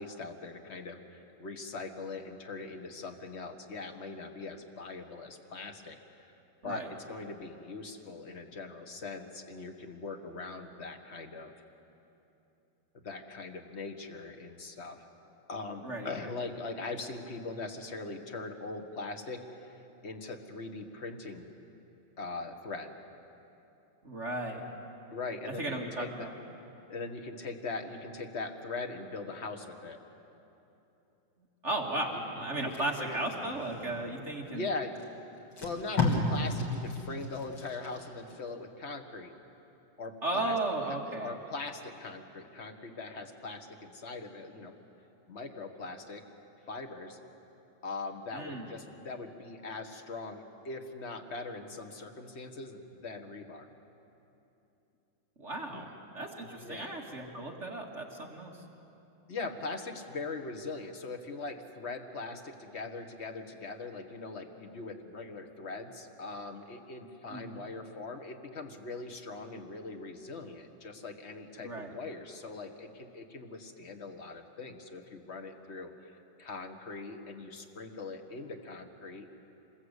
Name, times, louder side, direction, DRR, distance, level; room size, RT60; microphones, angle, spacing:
voice 1, 0.0-6.4 6.6-11.5 13.0-15.1 15.5-21.5 22.2-22.9 25.1-26.3 26.9-30.0 32.3-33.2 34.5-34.9 35.6-39.3 40.0-40.5 41.2-44.7 45.3-46.2 46.7-47.2 47.8-53.7 55.7-55.9 56.6-56.9 59.3-79.3, left 3 dB, 35° left, 5 dB, 1.5 m, -41 dB
voice 2, 15.8-16.3 24.0-24.6 25.6-26.3 31.6-34.7 40.2-41.4 48.3-48.7 55.4-55.9 56.1-58.6 67.3-67.6 71.6-71.9, right 2 dB, 35° right, 0 dB, 2.1 m, -35 dB
Packing tape duct tape, 32.6-34.2 34.9-35.0 35.4-38.4 38.8-39.0, left 2 dB, 50° left, 3.6 m, -34 dB
26.5 x 21.0 x 8.2 m, 2.9 s
omnidirectional pair, 2.4 m